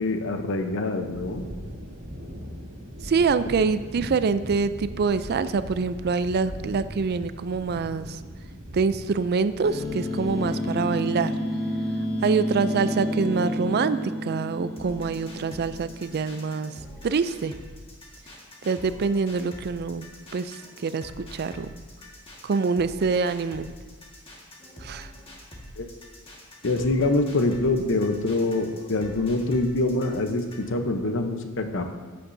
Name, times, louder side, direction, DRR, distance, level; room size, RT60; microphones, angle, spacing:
voice 1, 0.0-1.4 25.8-25.9 26.6-31.9, left 2 dB, 60° left, 6 dB, 0.8 m, -25 dB
sound 1, 1.1-10.6, equal, 65° right, 2.3 m, -40 dB
voice 2, 3.0-8.2 8.7-11.3 12.2-16.7 17.0-17.5 18.6-21.7 22.4-23.7 24.8-25.1, right 5 dB, 50° right, 13 dB, 0.4 m, -25 dB
sound 2, 9.6-16.2, left 1 dB, ahead, 2.1 m, -30 dB
sound 3, 14.8-30.8, left 1 dB, 25° left, 1.7 m, -45 dB
14.0 x 8.6 x 2.7 m, 1.5 s
head